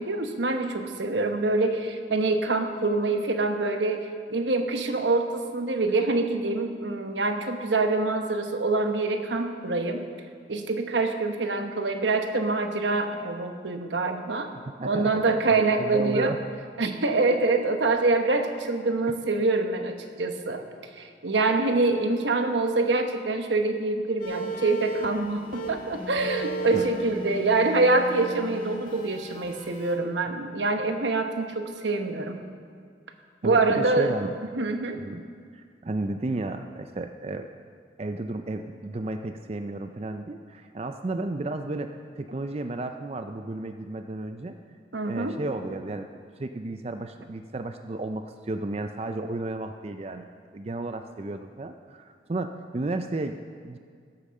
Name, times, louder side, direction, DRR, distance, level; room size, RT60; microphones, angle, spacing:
voice 1, 0.0-10.1 10.5-14.5 14.8-16.3 16.8-20.6 21.0-32.4 33.4-34.1 34.5-35.0 44.9-45.4, right 3 dB, 80° right, 6 dB, 1.1 m, -25 dB
voice 2, 14.8-16.4 26.7-26.9 33.4-34.4 35.0-35.2 35.5-37.5 38.0-44.6 45.0-46.1 46.4-50.3 50.5-53.4 53.6-53.8, right 2 dB, 35° right, 7 dB, 0.4 m, -33 dB
sound 1, 24.2-30.0, right 2 dB, 45° left, 1.8 m, -36 dB
15.0 x 8.4 x 6.4 m, 2.1 s
head